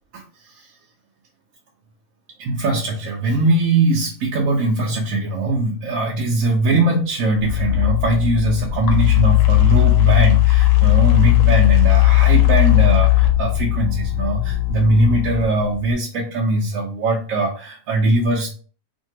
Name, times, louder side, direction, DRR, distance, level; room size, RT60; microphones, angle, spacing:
voice 1, 0.1-0.7 2.4-18.5, right 2 dB, 75° right, -3 dB, 1.0 m, -21 dB
sound 1, 7.3-15.9, left 17 dB, 80° left, 1.0 m, -16 dB
2.7 x 2.5 x 2.8 m, 0.41 s
omnidirectional pair, 1.4 m